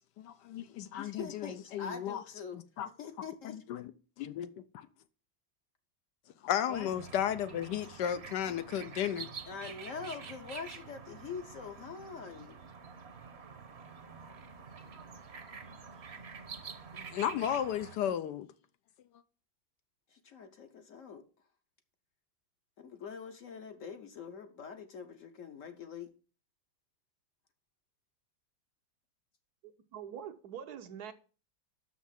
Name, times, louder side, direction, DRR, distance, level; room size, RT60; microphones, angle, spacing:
voice 1, 0.2-2.2 2.5-2.9 3.4-3.9 4.2-4.9 6.4-9.3 17.1-18.5, left 10 dB, 75° left, 1.2 m, -34 dB
voice 2, 1.0-2.6 3.0-3.6 6.7-6.9 9.5-12.6 16.9-17.2 20.1-21.2 22.8-26.1, left 6 dB, 55° left, 1.0 m, -44 dB
sound 1, 6.7-18.0, right 5 dB, 45° right, 0.9 m, -48 dB
voice 3, 29.6-31.1, right 8 dB, 70° right, 1.1 m, -44 dB
6.4 x 6.0 x 5.7 m
omnidirectional pair, 2.0 m